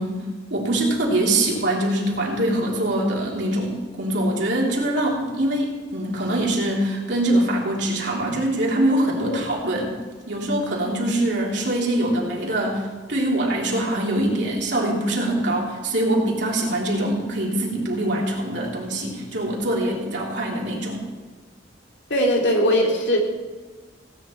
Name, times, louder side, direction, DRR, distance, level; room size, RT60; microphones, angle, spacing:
voice 1, 0.0-9.9 10.3-21.1, right 1 dB, 65° right, -3 dB, 3.3 m, -23 dB
voice 2, 22.1-23.2, equal, 65° left, 0 dB, 2.8 m, -20 dB
17.5 x 9.5 x 4.5 m, 1.4 s
head